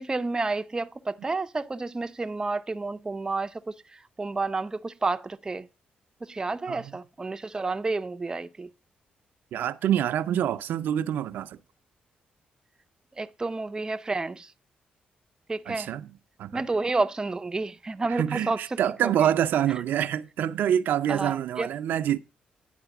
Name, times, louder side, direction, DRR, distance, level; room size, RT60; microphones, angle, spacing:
voice 1, 0.0-5.7 6.2-8.7 13.2-14.5 15.5-15.9 16.5-19.3 21.1-21.7, right 3 dB, 20° right, 0.5 m, -30 dB
voice 2, 9.5-11.6 15.7-16.1 16.4-16.6 18.1-22.2, right 10 dB, 80° right, 0.5 m, -26 dB
10.0 x 4.2 x 7.1 m
cardioid pair, 80°, 3 cm